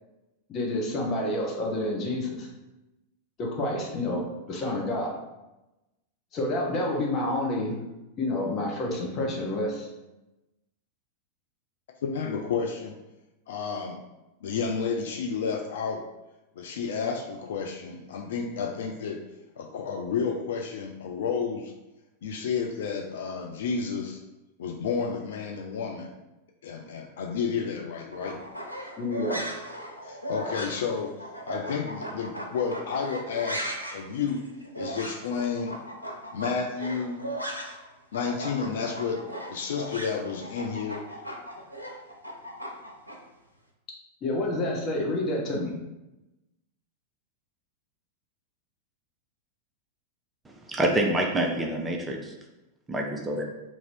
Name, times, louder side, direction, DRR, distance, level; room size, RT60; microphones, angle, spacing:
voice 1, 0.5-2.5 3.4-5.1 6.3-7.8 8.2-9.9 29.0-29.4 44.2-45.7, left 1 dB, 35° left, -1 dB, 0.9 m, -29 dB
voice 2, 12.0-13.0 13.5-14.0 14.4-16.0 16.6-19.2 19.6-21.7 22.2-24.2 24.6-26.1 26.6-28.4 30.0-31.2 31.5-34.4 34.8-35.8 36.3-37.2 38.1-39.2 39.5-41.1, left 5 dB, 60° left, 3 dB, 0.3 m, -31 dB
sound 1, 28.1-37.9 38.1-43.2, right 1 dB, 90° right, 0.5 m, -37 dB
voice 3, 50.7-52.3 52.9-53.4, right 1 dB, 10° right, 1 dB, 0.5 m, -26 dB
2.9 x 2.6 x 4.3 m, 1.0 s
figure-of-eight pair, 90°, 0 cm